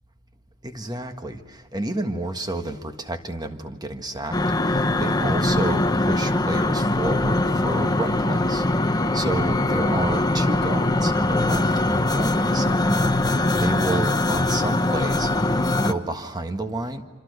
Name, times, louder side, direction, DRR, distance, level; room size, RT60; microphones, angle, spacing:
voice 1, 0.6-4.4 4.7-8.6 9.1-12.9 13.5-15.3 15.8-17.0, right 2 dB, 20° right, 7 dB, 1.6 m, -30 dB
sound 1, 4.3-15.9, left 2 dB, 20° left, 1.0 m, -22 dB
26.5 x 26.5 x 6.7 m, 1.4 s
head